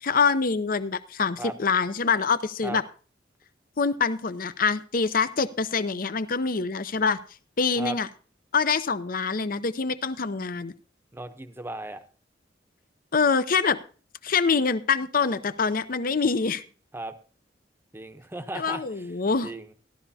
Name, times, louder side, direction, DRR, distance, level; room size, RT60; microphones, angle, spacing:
voice 1, 0.0-2.8 3.8-7.2 7.6-8.1 8.5-10.7 13.1-13.8 14.2-16.6 18.5-19.5, left 5 dB, 50° left, 14 dB, 0.6 m, -25 dB
voice 2, 11.1-12.0 16.9-17.1 17.9-19.1 19.4-19.7, right 2 dB, 15° right, 8 dB, 0.8 m, -36 dB
15.0 x 12.0 x 2.8 m, 0.38 s
head